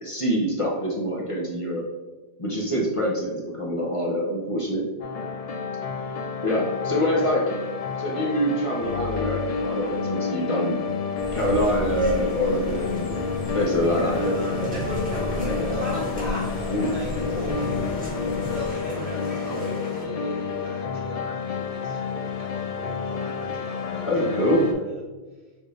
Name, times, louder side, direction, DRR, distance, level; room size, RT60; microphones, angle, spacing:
voice 1, 0.0-1.8 2.4-4.8 6.4-7.4 8.0-10.8 11.3-13.2 13.5-14.3 16.7-16.9 24.0-24.7, equal, 35° left, -3 dB, 0.8 m, -25 dB
sound 1, 5.0-24.7, left 5 dB, 55° left, 0.4 m, -30 dB
voice 2, 6.9-7.4 13.8-18.1 18.5-25.0, equal, 75° right, -4 dB, 1.6 m, -38 dB
sound 2, 11.2-18.7, equal, 60° right, 1.8 m, -37 dB
sound 3, 11.3-20.0, equal, 10° right, 1.3 m, -34 dB
6.3 x 2.7 x 3.2 m, 1.3 s
omnidirectional pair, 1.1 m